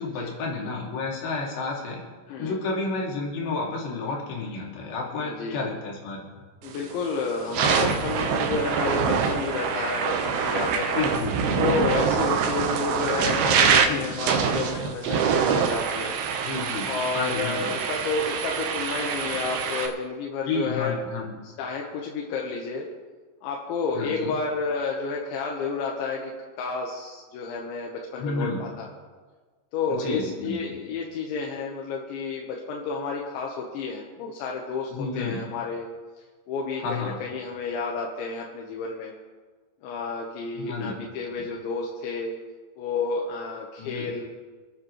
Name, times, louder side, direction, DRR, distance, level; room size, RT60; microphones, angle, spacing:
voice 1, 0.0-6.3 10.9-11.6 13.9-14.1 16.4-17.8 20.5-21.3 23.9-24.4 28.2-28.6 30.0-30.6 34.9-35.4 36.8-37.2 40.5-40.9 43.8-44.1, left 3 dB, 70° left, -2 dB, 4.5 m, -31 dB
voice 2, 5.2-5.7 6.6-11.0 11.6-16.2 16.9-21.0 21.4-22.9 23.4-28.9 29.7-35.9 36.5-39.1 39.8-42.4 42.8-44.3, left 4 dB, 85° left, -1 dB, 3.5 m, -31 dB
sound 1, 6.7-6.9 7.4-19.9, right 6 dB, 70° right, 2.5 m, -25 dB
27.5 x 9.8 x 3.2 m, 1.4 s
omnidirectional pair, 5.2 m